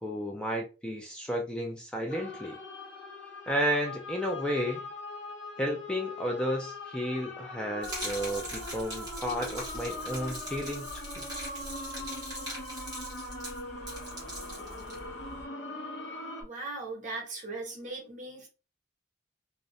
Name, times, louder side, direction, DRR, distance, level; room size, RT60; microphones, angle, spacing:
voice 1, 0.0-2.6 3.5-4.9 5.6-10.8, equal, 5° left, 0.3 m, -32 dB
sound 1, 2.1-16.4, left 2 dB, 65° left, 0.8 m, -41 dB
Gurgling / Liquid, 7.8-15.5, equal, 20° right, 1.0 m, -41 dB
voice 2, 16.4-18.5, right 2 dB, 40° right, 0.7 m, -38 dB
2.5 x 2.0 x 2.6 m
head